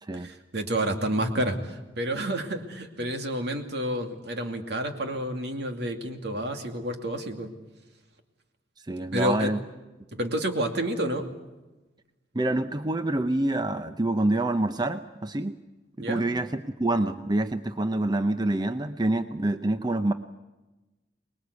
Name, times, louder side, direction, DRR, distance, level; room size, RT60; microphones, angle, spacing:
voice 1, 0.1-7.5 9.1-9.5 10.1-11.3 16.0-16.3, right 1 dB, 65° right, 5 dB, 2.5 m, -29 dB
voice 2, 8.9-9.6 12.3-15.6 16.1-20.1, right 2 dB, 25° right, 9 dB, 0.7 m, -26 dB
25.0 x 21.0 x 8.2 m, 1.1 s
head